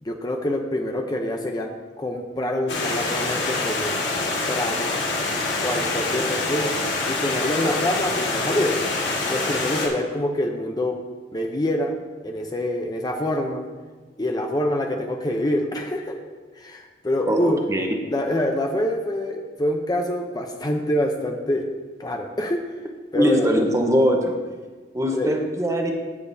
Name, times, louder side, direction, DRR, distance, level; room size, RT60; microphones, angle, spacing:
voice 1, 0.0-1.7 2.0-4.0 4.5-5.0 5.6-6.8 7.1-8.8 9.3-11.0 11.3-12.0 12.2-13.7 14.2-16.2 16.6-17.6 18.1-21.7 22.0-22.6 23.1-23.6 25.1-25.4, left 1 dB, 20° left, 3 dB, 0.6 m, -25 dB
Stream, 2.7-9.9, left 3 dB, 75° left, 1.7 m, -25 dB
voice 2, 17.3-17.9 23.1-24.4 24.9-25.9, equal, 15° right, 2 dB, 1.0 m, -21 dB
15.5 x 6.8 x 2.7 m, 1.3 s
head